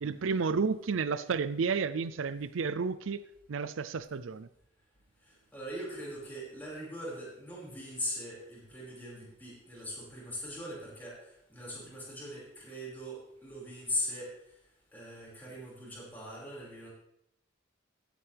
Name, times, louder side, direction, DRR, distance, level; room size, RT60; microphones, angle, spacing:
voice 1, 0.0-3.2 3.5-4.5, right 5 dB, 85° right, 0.5 m, -31 dB
voice 2, 5.3-14.3 14.9-16.9, left 1 dB, 10° left, 5.5 m, -40 dB
16.0 x 9.1 x 3.5 m
head